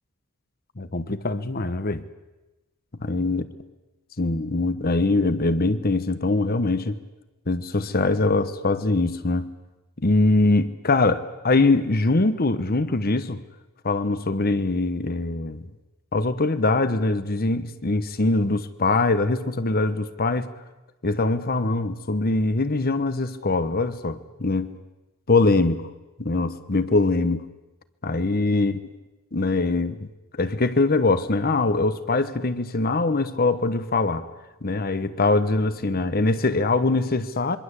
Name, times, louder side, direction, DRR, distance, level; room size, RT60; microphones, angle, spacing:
voice 1, 0.8-2.0 3.0-3.5 4.2-7.0 7.5-9.5 10.0-13.4 13.8-15.6 16.1-20.5 21.0-24.7 25.3-25.9 26.2-27.4 28.0-28.8 29.3-30.0 30.3-34.3 34.6-37.6, left 2 dB, 45° left, 1.1 m, -22 dB
26.5 x 23.0 x 8.3 m
head